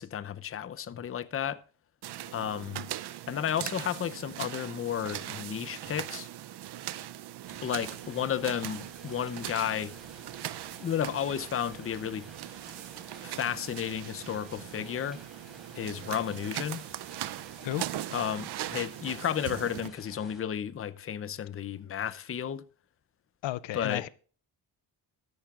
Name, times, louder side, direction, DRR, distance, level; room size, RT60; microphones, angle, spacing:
voice 1, 0.0-1.6 2.3-2.9 3.3-6.3 7.6-9.9 10.8-12.3 13.2-15.2 15.7-16.8 18.1-22.6 23.7-24.0, left 9 dB, 30° left, 0.6 m, -33 dB
sound 1, 2.0-19.9, right 13 dB, 60° right, 0.6 m, -40 dB
sound 2, 7.4-20.4, equal, ahead, 4.2 m, -54 dB
voice 2, 23.4-24.1, left 15 dB, 75° left, 0.6 m, -33 dB
13.0 x 11.0 x 2.4 m
cardioid pair, 120°, 45 cm